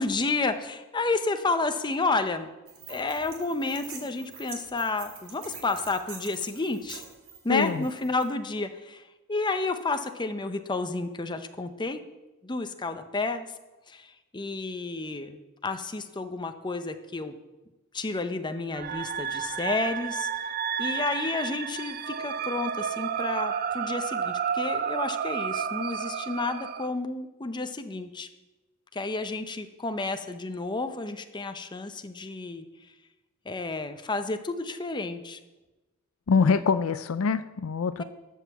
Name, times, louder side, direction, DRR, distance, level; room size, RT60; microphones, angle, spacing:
voice 1, 0.0-2.5 2.9-7.0 7.4-9.0 9.3-12.0 12.4-13.5 13.9-17.3 17.9-20.3 20.8-28.3 28.9-32.6 33.5-35.4 36.4-36.6, left 3 dB, 20° left, 8 dB, 0.6 m, -31 dB
sound 1, 2.7-8.2, right 5 dB, 65° right, 2.2 m, -45 dB
voice 2, 7.5-7.9 36.3-38.0, left 5 dB, 70° left, 13 dB, 0.4 m, -24 dB
sound 2, 18.7-26.9, right 7 dB, 45° right, 0.4 m, -31 dB
12.0 x 5.5 x 7.0 m, 1.1 s
head